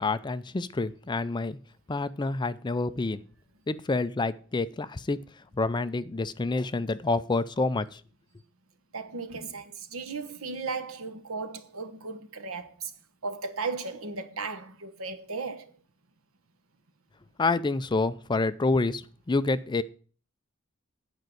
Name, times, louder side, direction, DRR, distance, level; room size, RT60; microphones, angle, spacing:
voice 1, 0.0-1.6 1.9-3.2 3.7-5.2 5.6-8.0 17.4-19.0 19.3-19.8, left 3 dB, 20° left, 0.4 m, -28 dB
voice 2, 8.9-12.9 13.2-15.7, right 4 dB, 75° right, 1.1 m, -36 dB
9.2 x 5.2 x 7.7 m
head